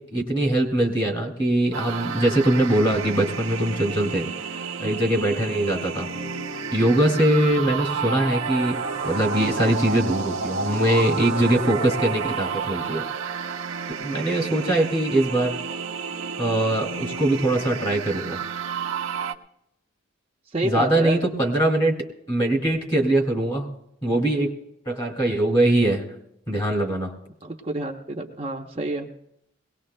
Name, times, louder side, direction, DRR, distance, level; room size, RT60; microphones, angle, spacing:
voice 1, 0.0-6.1 6.7-8.8 9.0-13.1 14.0-15.6 16.4-18.4 20.6-23.7 24.0-24.5 24.9-26.0 26.5-27.1, right 1 dB, 25° left, 2 dB, 2.5 m, -22 dB
sound 1, 1.7-19.3, right 6 dB, 75° right, 0.8 m, -31 dB
sound 2, 6.0-12.0, equal, 75° left, 2.5 m, -41 dB
voice 2, 20.5-21.2 24.1-24.2 27.4-29.1, right 1 dB, 25° right, 0 dB, 0.8 m, -29 dB
22.0 x 19.0 x 2.2 m, 0.78 s
head